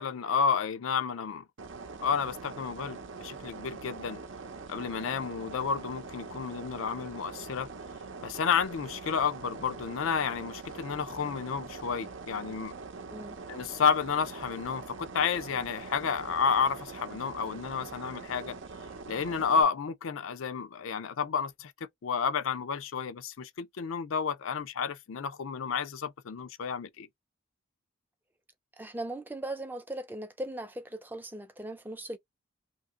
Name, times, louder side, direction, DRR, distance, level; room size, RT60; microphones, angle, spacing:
voice 1, 0.0-1.5 2.0-4.2 4.7-7.7 8.2-12.7 13.5-18.6 19.1-21.7 22.0-27.1, left 6 dB, 80° left, 0.5 m, -31 dB
sound 1, 1.6-19.6, right 4 dB, 65° right, 0.7 m, -43 dB
voice 2, 28.8-32.2, right 1 dB, 10° right, 0.4 m, -38 dB
2.8 x 2.6 x 3.6 m
head